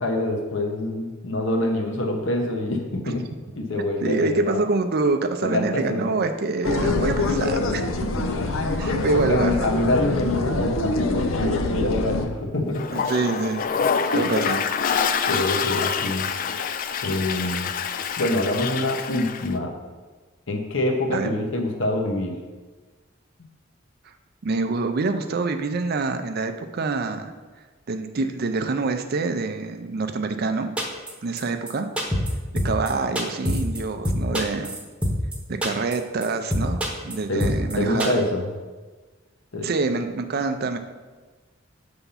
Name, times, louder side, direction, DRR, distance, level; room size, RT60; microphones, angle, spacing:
voice 1, 0.0-3.3 3.6-4.6 5.4-6.2 7.0-7.2 8.2-8.7 9.1-12.9 14.1-14.3 15.3-16.3 17.0-17.7 18.2-19.7 20.5-22.4 37.3-38.5 39.5-39.7, left 1 dB, 65° left, 2 dB, 1.0 m, -25 dB
voice 2, 4.0-7.8 8.8-9.9 12.9-13.7 14.1-14.6 21.1-21.4 24.4-27.3 27.9-30.7 31.2-31.9 32.6-34.7 35.5-38.2 39.6-40.8, right 3 dB, 50° right, 8 dB, 0.5 m, -26 dB
sound 1, 6.6-12.3, left 2 dB, 80° left, 0.6 m, -25 dB
Toilet flush, 12.7-19.5, left 6 dB, 45° left, 0.3 m, -26 dB
sound 2, 30.8-31.1 31.4-31.5 31.7-31.8 32.0-32.3 32.6-32.9 33.1-33.8 34.0-35.3 35.6-35.9 36.2-36.3 36.5-37.1 37.4-37.7 38.0-38.1, equal, 5° right, 0.9 m, -24 dB
6.9 x 3.5 x 5.6 m, 1.3 s
head